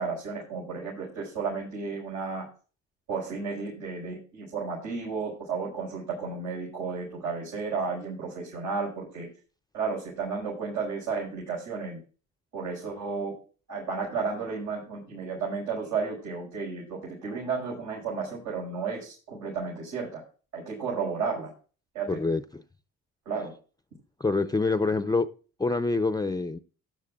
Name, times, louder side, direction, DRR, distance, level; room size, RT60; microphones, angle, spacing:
voice 1, 0.0-2.5 3.1-9.3 9.7-12.0 12.5-13.3 13.7-20.2 20.5-21.5 21.9-22.2 23.3-23.5, right 5 dB, 85° right, 5.7 m, -33 dB
voice 2, 22.1-22.6 24.2-25.3 25.6-26.6, left 3 dB, 15° left, 0.5 m, -26 dB
13.5 x 10.5 x 2.4 m
cardioid pair, 90°, 30 cm